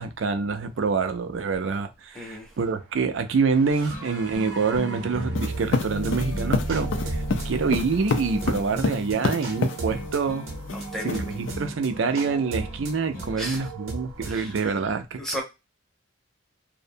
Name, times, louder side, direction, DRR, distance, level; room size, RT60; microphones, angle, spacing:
voice 1, 0.0-10.4 11.0-15.4, right 5 dB, 65° right, 0.4 m, -26 dB
voice 2, 2.1-2.5 10.7-11.2 13.4-13.7 14.3-14.8 15.2-15.4, equal, ahead, 0.7 m, -35 dB
sound 1, 2.9-14.7, right 2 dB, 85° right, 0.8 m, -36 dB
sound 2, 3.8-13.6, left 1 dB, 85° left, 0.8 m, -38 dB
sound 3, 5.3-9.8 10.7-11.5, left 4 dB, 60° left, 0.4 m, -27 dB
2.5 x 2.1 x 2.6 m
head